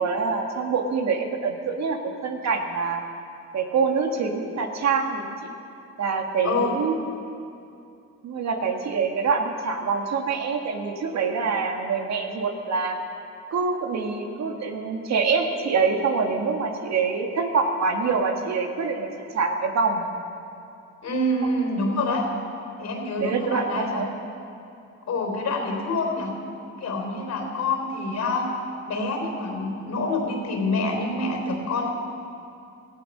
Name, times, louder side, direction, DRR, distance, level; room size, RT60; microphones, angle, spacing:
voice 1, 0.0-3.0 3.5-5.4 6.0-6.9 8.2-13.0 13.5-19.1 19.3-20.0 23.2-24.1, right 5 dB, 60° right, 3 dB, 1.9 m, -25 dB
voice 2, 21.0-22.3 22.8-24.1 25.1-26.3 26.8-28.5 28.9-31.9, left 2 dB, 65° left, 2 dB, 3.8 m, -26 dB
17.5 x 14.5 x 5.5 m, 2.6 s
cardioid pair, 90°, 30 cm